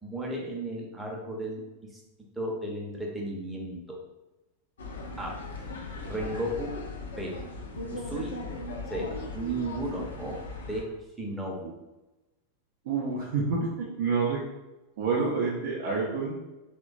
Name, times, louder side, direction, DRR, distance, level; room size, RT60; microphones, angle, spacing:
voice 1, 0.0-1.6 2.4-4.0 5.2-5.3 6.1-6.7 7.2-7.3 7.9-8.3 8.9-9.0 9.3-10.3 10.7-10.8 11.2-11.7, right 1 dB, 5° right, -2 dB, 0.7 m, -34 dB
sound 1, 4.8-10.8, left 2 dB, 65° left, 0.4 m, -38 dB
sound 2, 5.5-7.3 8.3-9.2 9.6-10.1 10.3-10.4 10.8-10.9, right 1 dB, 80° left, 0.9 m, -51 dB
voice 2, 12.8-14.4 15.0-16.3, right 4 dB, 55° right, -5 dB, 0.5 m, -28 dB
3.1 x 2.1 x 2.5 m, 1.1 s
figure-of-eight pair, 90°, 0 cm